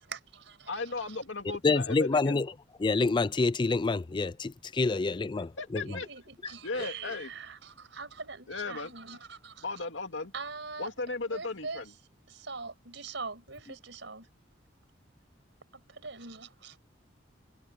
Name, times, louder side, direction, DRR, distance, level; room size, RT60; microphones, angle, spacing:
voice 1, 0.0-0.7 5.8-9.8 10.3-10.9 11.3-11.9 12.3-14.3 15.7-16.8, right 4 dB, 70° right, 6.0 m, -43 dB
voice 2, 0.7-2.4 5.4-6.1 6.6-7.3 8.5-8.9 9.6-10.3 10.8-11.9, left 3 dB, 75° left, 2.4 m, -36 dB
voice 3, 1.6-2.4 2.8-4.5 4.8-5.5, left 3 dB, 25° left, 0.4 m, -26 dB
head